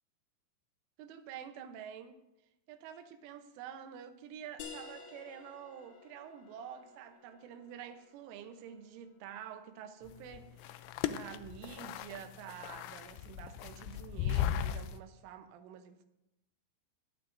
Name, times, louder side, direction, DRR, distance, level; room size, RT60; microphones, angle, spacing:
voice 1, 1.0-2.2 2.7-16.1, right 8 dB, 80° right, 3.3 m, -48 dB
sound 1, 4.6-9.9, left 4 dB, 65° left, 2.3 m, -53 dB
sound 2, 10.1-15.0, left 10 dB, 85° left, 2.6 m, -37 dB
18.5 x 12.0 x 2.6 m
omnidirectional pair, 5.7 m